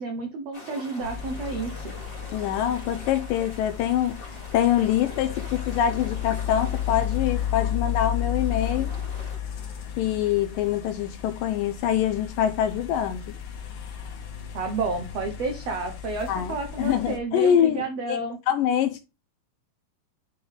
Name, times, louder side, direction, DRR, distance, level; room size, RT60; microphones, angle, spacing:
voice 1, 0.0-1.9 14.5-18.4, right 3 dB, 80° right, 1.4 m, -31 dB
sound 1, 0.5-9.4, left 1 dB, 30° left, 1.0 m, -44 dB
sound 2, 1.0-17.2, left 9 dB, 65° left, 2.6 m, -33 dB
voice 2, 2.3-8.9 10.0-13.2 16.3-17.8 18.1-18.2 18.5-19.0, left 10 dB, 80° left, 2.1 m, -24 dB
8.4 x 3.5 x 3.6 m
omnidirectional pair, 4.4 m